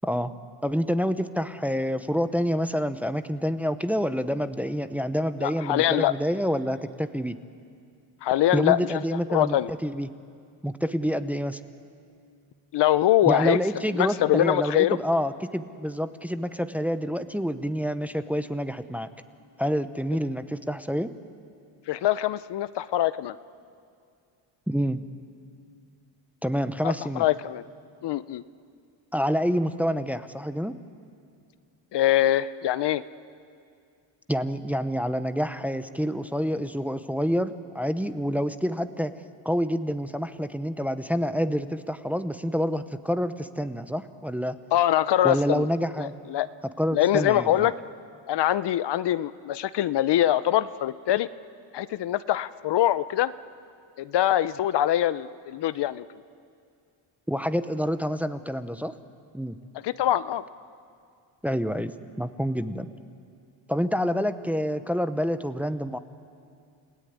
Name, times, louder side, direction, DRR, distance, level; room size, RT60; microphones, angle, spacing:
voice 1, 0.0-0.3 0.6-7.4 8.5-10.1 10.6-11.6 13.2-19.1 19.6-21.1 24.7-25.0 26.4-27.3 29.1-30.7 34.3-39.2 39.4-44.6 45.2-46.1 46.8-47.7 57.3-59.0 59.3-59.6 61.4-62.9 63.7-66.0, equal, 5° right, 11 dB, 0.7 m, -27 dB
voice 2, 5.4-6.1 8.2-8.8 9.3-9.7 12.7-13.6 13.9-15.0 21.9-23.4 26.8-27.6 28.0-28.4 31.9-33.0 44.7-45.7 46.0-46.5 46.9-47.7 48.3-51.3 51.7-53.3 54.0-56.1 59.8-60.4, left 13 dB, 60° left, 15 dB, 0.7 m, -23 dB
29.5 x 17.5 x 9.5 m, 2.3 s
cardioid pair, 120°, 47 cm